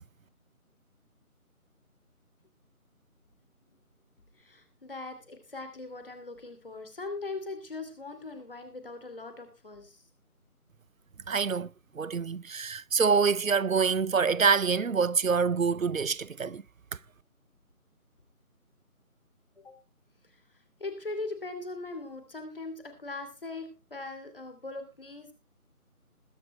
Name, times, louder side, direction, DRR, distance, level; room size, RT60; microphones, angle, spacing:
voice 1, 4.3-10.0 19.6-19.8 20.8-25.3, left 3 dB, 40° left, 2.9 m, -40 dB
voice 2, 11.3-16.6, right 5 dB, 65° right, 0.6 m, -26 dB
21.0 x 7.2 x 3.2 m
figure-of-eight pair, 165°, 44 cm